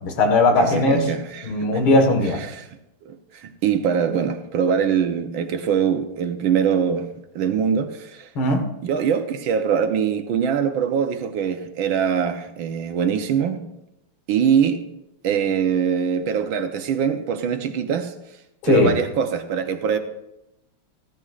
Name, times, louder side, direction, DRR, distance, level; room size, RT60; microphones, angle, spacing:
voice 1, 0.0-1.1 1.4-2.4 8.4-8.6 18.6-18.9, left 2 dB, 80° left, 2.4 m, -18 dB
voice 2, 0.6-1.8 2.4-2.7 3.0-7.1 7.3-8.3 8.8-13.6 14.3-14.8 15.2-18.1 18.7-20.0, right 7 dB, 75° right, 1.6 m, -23 dB
14.5 x 14.0 x 2.4 m
omnidirectional pair, 2.2 m